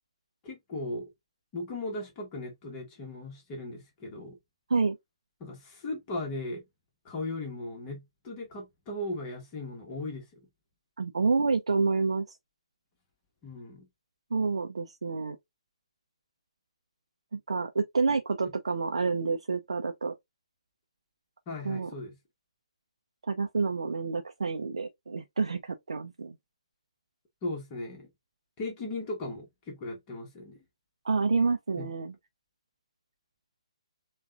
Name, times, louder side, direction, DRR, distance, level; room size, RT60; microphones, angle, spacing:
voice 1, 0.4-1.1 1.5-4.4 5.4-6.6 7.0-10.4 13.4-13.9 18.4-18.5 21.5-22.1 27.4-28.1 28.6-30.6 31.7-31.9, left 2 dB, 25° left, 1.4 m, -37 dB
voice 2, 11.0-12.4 14.3-15.4 17.3-20.1 21.6-21.9 23.2-26.4 31.0-32.1, right 4 dB, 70° right, 0.6 m, -28 dB
7.0 x 2.4 x 2.5 m
figure-of-eight pair, 135°, 3 cm